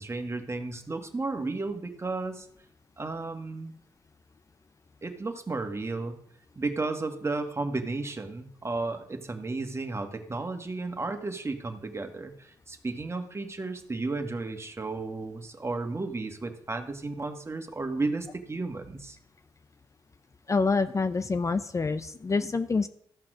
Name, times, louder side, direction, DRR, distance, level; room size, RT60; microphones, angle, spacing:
voice 1, 0.0-2.5 3.0-3.7 5.0-6.2 6.6-19.2, right 3 dB, 30° right, 5 dB, 1.8 m, -33 dB
voice 2, 20.5-22.9, left 4 dB, 35° left, 11 dB, 0.7 m, -26 dB
14.0 x 6.0 x 6.3 m, 0.70 s
hypercardioid pair, 45°, 9 cm